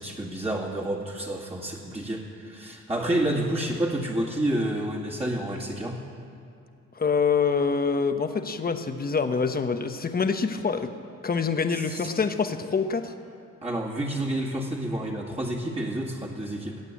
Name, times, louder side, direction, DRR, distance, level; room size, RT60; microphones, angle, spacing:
voice 1, 0.0-6.0 11.7-12.1 13.6-16.8, right 1 dB, 20° right, -4 dB, 2.2 m, -29 dB
voice 2, 6.9-10.9 11.2-13.1, left 5 dB, 30° left, 8 dB, 1.1 m, -25 dB
19.5 x 8.4 x 8.4 m, 2.6 s
cardioid pair, 90°, 30 cm